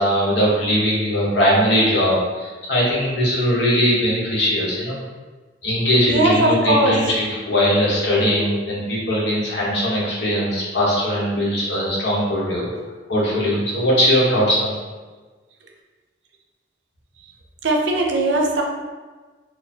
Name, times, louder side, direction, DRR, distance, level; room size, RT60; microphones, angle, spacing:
voice 1, 0.0-4.9 5.6-12.7 13.1-14.8, equal, 70° left, -6 dB, 1.1 m, -20 dB
voice 2, 6.1-7.2 8.5-8.6 17.6-18.6, right 1 dB, 75° right, 1 dB, 0.5 m, -19 dB
4.2 x 2.3 x 2.8 m, 1.3 s
head